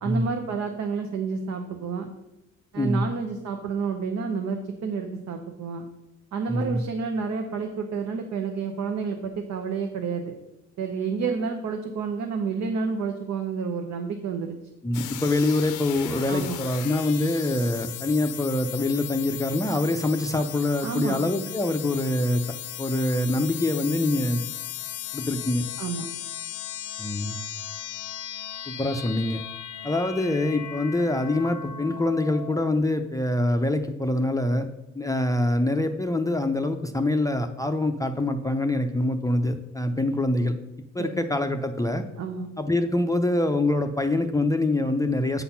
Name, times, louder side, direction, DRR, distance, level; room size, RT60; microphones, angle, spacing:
voice 1, 0.0-2.1 2.7-5.9 6.3-10.4 10.8-14.6 16.3-16.6 20.8-21.2 25.8-26.0 41.0-41.2 42.2-42.5, right 5 dB, 65° right, 4 dB, 0.9 m, -30 dB
voice 2, 6.5-6.8 14.8-22.4 22.8-24.4 25.1-25.6 27.0-27.4 28.7-29.4 29.8-34.7 35.0-40.5 40.9-42.0 42.6-45.4, left 1 dB, 10° left, 5 dB, 0.5 m, -25 dB
sound 1, 14.9-32.8, left 12 dB, 85° left, 0.6 m, -37 dB
8.3 x 4.1 x 5.7 m, 0.92 s
cardioid pair, 90°, 30 cm